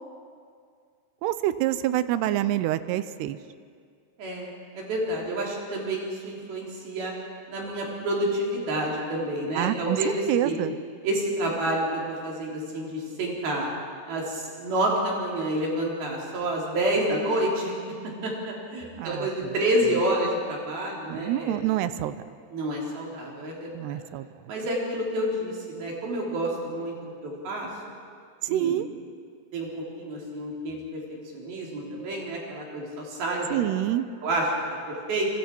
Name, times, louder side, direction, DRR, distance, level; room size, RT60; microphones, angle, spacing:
voice 1, 1.2-3.4 9.5-10.8 19.0-19.5 21.1-22.2 23.7-24.3 28.4-28.9 33.5-34.1, right 13 dB, 90° right, 13 dB, 2.8 m, -27 dB
voice 2, 4.2-7.1 7.5-10.6 11.0-13.7 14.1-17.7 18.2-21.6 22.5-24.0 24.5-26.9 27.2-27.7 28.5-28.8 29.5-31.0 31.3-33.7 34.2-34.5 34.9-35.3, right 1 dB, 65° right, -2 dB, 5.2 m, -29 dB
30.0 x 21.0 x 4.5 m, 2.1 s
omnidirectional pair, 4.7 m